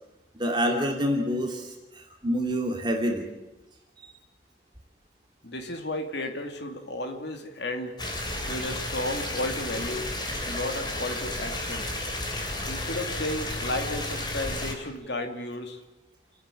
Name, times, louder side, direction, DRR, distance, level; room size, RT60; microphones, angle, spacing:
voice 1, 0.4-3.2 4.0-4.1, equal, 25° right, 1 dB, 2.8 m, -27 dB
voice 2, 5.4-8.0 8.5-10.1 10.5-11.9 12.7-15.8, left 1 dB, 60° left, 5 dB, 2.6 m, -33 dB
sound 1, 8.0-14.7, left 1 dB, 25° left, 2.9 m, -32 dB
29.0 x 10.0 x 10.0 m, 1.0 s
head